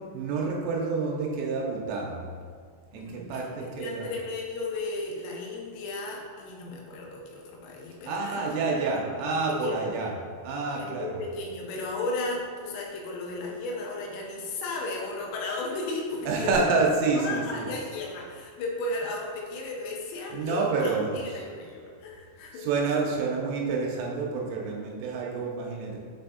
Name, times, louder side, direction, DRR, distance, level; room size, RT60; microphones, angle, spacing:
voice 1, 0.1-2.2 2.9-4.1 8.1-10.1 10.4-11.2 16.3-17.7 20.3-21.1 22.6-26.0, right 4 dB, 90° right, -1 dB, 3.2 m, -28 dB
voice 2, 3.0-8.6 9.5-9.8 10.8-16.9 17.1-22.7, left 2 dB, 90° left, -1 dB, 3.2 m, -35 dB
7.4 x 3.4 x 3.9 m, 2.1 s
omnidirectional pair, 5.8 m